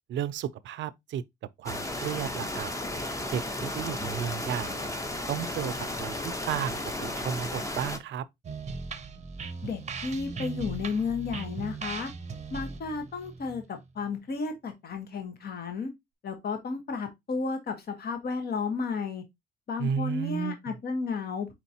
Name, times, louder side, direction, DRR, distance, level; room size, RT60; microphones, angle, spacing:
voice 1, 0.1-1.2 1.6-2.7 3.3-4.8 5.3-5.7 6.0-8.2 19.8-20.6, right 9 dB, 70° right, 0.5 m, -33 dB
sound 1, 1.7-8.0, left 1 dB, 15° left, 0.8 m, -34 dB
sound 2, 8.4-14.1, right 4 dB, 35° right, 0.7 m, -38 dB
voice 2, 9.6-12.1 12.5-15.9 16.2-19.2 19.7-21.5, left 4 dB, 50° left, 1.2 m, -33 dB
4.6 x 4.0 x 2.8 m
cardioid pair, 90°, 20 cm